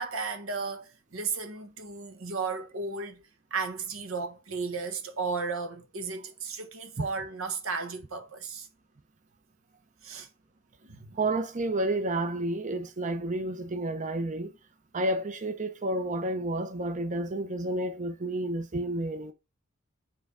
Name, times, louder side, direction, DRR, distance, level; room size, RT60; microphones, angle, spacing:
voice 1, 0.0-3.2 3.5-8.7 10.0-10.3 10.8-11.2, right 4 dB, 85° right, 1.4 m, -34 dB
voice 2, 11.1-14.5 14.9-19.3, right 1 dB, 35° right, 0.7 m, -30 dB
7.6 x 3.4 x 4.9 m
head